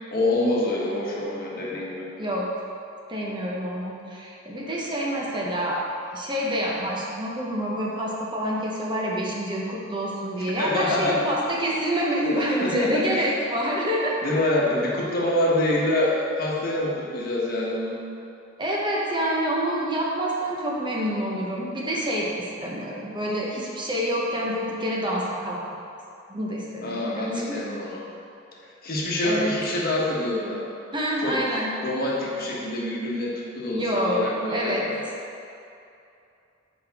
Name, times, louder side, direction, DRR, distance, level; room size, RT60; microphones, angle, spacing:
voice 1, 0.1-2.1 10.6-11.3 12.5-13.3 14.2-18.0 26.8-28.0 28.6-30.6 31.2-31.4 31.8-35.0, left 1 dB, 50° left, -5 dB, 1.1 m, -26 dB
voice 2, 3.1-5.8 6.1-14.2 18.6-25.6 26.3-27.6 29.2-29.5 30.9-31.7 33.7-34.8, equal, 25° right, -4 dB, 0.7 m, -27 dB
6.3 x 5.1 x 3.5 m, 2.6 s
head